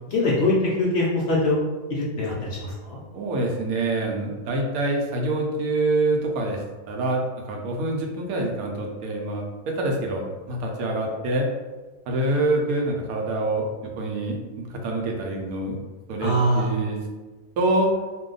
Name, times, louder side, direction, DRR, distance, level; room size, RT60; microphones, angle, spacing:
voice 1, 0.1-1.6 1.9-3.0 16.2-16.7, left 1 dB, 70° left, -4 dB, 0.6 m, -23 dB
voice 2, 3.1-6.6 6.9-11.5 12.1-15.8 16.1-17.0 17.6-17.9, right 2 dB, 70° right, 1 dB, 1.0 m, -26 dB
2.8 x 2.2 x 3.8 m, 1.3 s
omnidirectional pair, 1.7 m